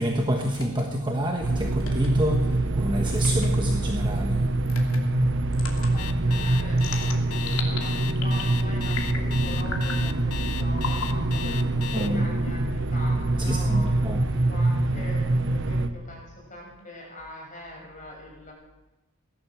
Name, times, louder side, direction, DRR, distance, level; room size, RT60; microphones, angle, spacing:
voice 1, 0.0-5.8 11.9-12.3 13.4-14.3, equal, 20° right, 1 dB, 1.3 m, -29 dB
sound 1, 0.5-0.8 1.8-2.1 3.2-3.5 4.7-5.0 5.5-5.9 6.8-7.8 8.2-8.5 8.9-9.3 9.7-10.0 10.8-11.1 11.9-12.8, left 4 dB, 65° left, 2.7 m, -36 dB
sound 2, 1.4-15.9, right 2 dB, 55° right, 1.1 m, -25 dB
voice 2, 5.6-18.5, left 1 dB, 35° left, -1 dB, 6.0 m, -43 dB
Alarm, 6.0-12.1, left 10 dB, 90° left, 1.0 m, -36 dB
18.0 x 11.5 x 7.1 m, 1.0 s
head